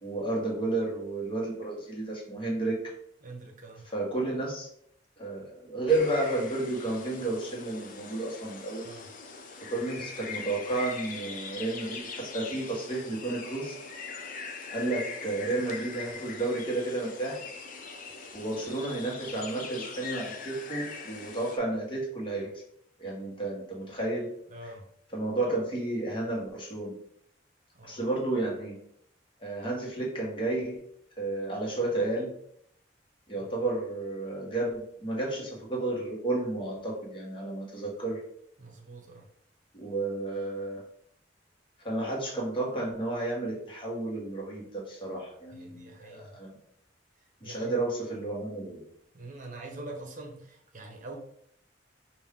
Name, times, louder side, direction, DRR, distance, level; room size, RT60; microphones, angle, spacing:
voice 1, 0.0-2.8 3.9-4.7 5.2-8.8 9.6-13.7 14.7-17.4 18.3-22.6 23.0-24.3 24.6-24.7 25.1-26.9 27.8-28.8 29.4-30.8 31.2-32.3 33.3-38.2 39.7-40.8 41.8-46.5 47.4-48.8, right 2 dB, 30° left, -3 dB, 1.5 m, -32 dB
voice 2, 3.2-3.9 8.8-9.1 24.5-24.9 27.7-28.0 33.4-33.5 38.6-39.3 45.5-46.4 47.4-47.8 49.1-51.2, right 2 dB, 45° right, 2 dB, 0.9 m, -44 dB
sound 1, 5.9-21.6, left 5 dB, 45° left, 0.5 m, -42 dB
5.3 x 2.6 x 3.6 m, 0.69 s
head